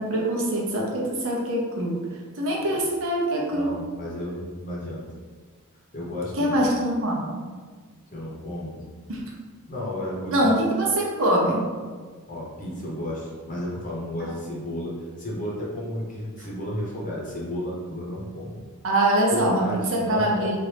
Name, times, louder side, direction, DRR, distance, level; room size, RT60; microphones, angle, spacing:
voice 1, 0.1-2.0 2.4-3.8 6.4-7.4 9.1-9.2 10.3-11.7 18.8-20.6, right 1 dB, 65° right, -2 dB, 0.7 m, -23 dB
voice 2, 3.5-5.0 5.9-6.7 8.1-8.8 9.7-10.5 12.3-18.6 19.3-20.6, left 1 dB, 35° left, -5 dB, 0.9 m, -33 dB
3.0 x 2.5 x 3.3 m, 1.5 s
head